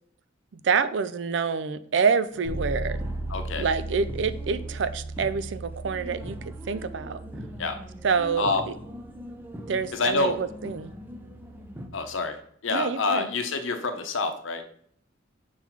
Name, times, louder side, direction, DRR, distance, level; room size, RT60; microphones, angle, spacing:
voice 1, 0.5-3.0 3.6-6.4 6.7-7.2 8.0-8.7 9.7-10.9 12.7-13.3, right 5 dB, 65° right, 13 dB, 0.4 m, -27 dB
sound 1, 2.3-11.9, equal, 10° right, 0.6 m, -43 dB
Bass guitar, 2.4-12.2, right 2 dB, 85° right, 2.9 m, -38 dB
voice 2, 3.3-3.7 7.6-7.8 8.4-8.6 9.9-10.4 11.9-12.4 12.6-14.6, left 3 dB, 80° left, 7 dB, 0.9 m, -27 dB
5.6 x 3.9 x 4.6 m, 0.62 s
head